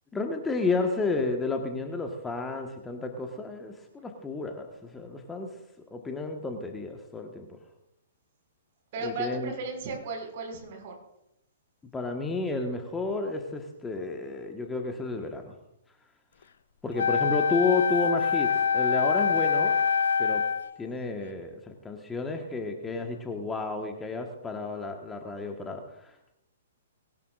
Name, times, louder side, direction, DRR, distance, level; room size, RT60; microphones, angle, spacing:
voice 1, 0.1-5.5 5.8-7.6 9.0-9.5 11.9-15.5 16.8-19.8 20.2-20.4 20.8-26.3, left 3 dB, 10° left, 3 dB, 1.5 m, -31 dB
voice 2, 8.9-10.9, right 3 dB, 45° right, 2 dB, 5.8 m, -35 dB
Wind instrument woodwind instrument, 17.0-20.8, left 6 dB, 65° left, 0.6 m, -25 dB
20.5 x 18.0 x 2.6 m, 0.85 s
figure-of-eight pair, 115°, 0 cm